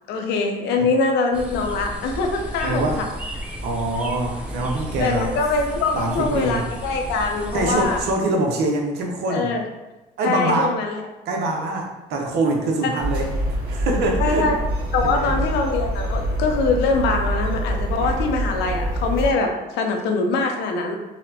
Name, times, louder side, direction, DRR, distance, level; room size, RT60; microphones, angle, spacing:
voice 1, 0.1-3.1 5.0-8.0 9.3-9.6 10.2-11.0 14.2-14.6 14.9-21.0, left 3 dB, 80° left, 3 dB, 0.6 m, -23 dB
sound 1, 1.3-8.1, equal, 5° right, 0.5 m, -33 dB
voice 2, 2.6-3.0 3.6-5.3 5.9-6.6 7.5-9.6 10.2-10.7 11.3-13.3 13.7-14.5 15.0-15.4, right 2 dB, 75° right, 1 dB, 0.7 m, -24 dB
sound 2, 13.0-19.3, equal, 60° right, 1.4 m, -25 dB
4.0 x 2.1 x 2.7 m, 1.0 s
cardioid pair, 110°, 17 cm